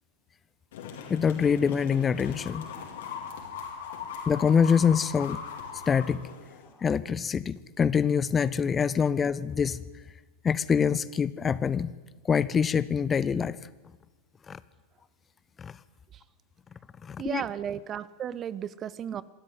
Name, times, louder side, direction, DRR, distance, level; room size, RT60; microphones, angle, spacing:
sound 1, 0.7-6.7, left 6 dB, 55° left, 4.2 m, -40 dB
voice 1, 1.1-2.6 4.3-5.4 5.9-6.3 6.8-9.8 10.4-11.9 12.2-13.6 14.5-14.6 15.6-15.7 17.0-17.4, left 6 dB, 20° left, 18 dB, 0.8 m, -25 dB
voice 2, 17.2-19.2, right 9 dB, 25° right, 19 dB, 0.8 m, -34 dB
26.5 x 13.0 x 9.3 m, 1.2 s
figure-of-eight pair, 90°, 0 cm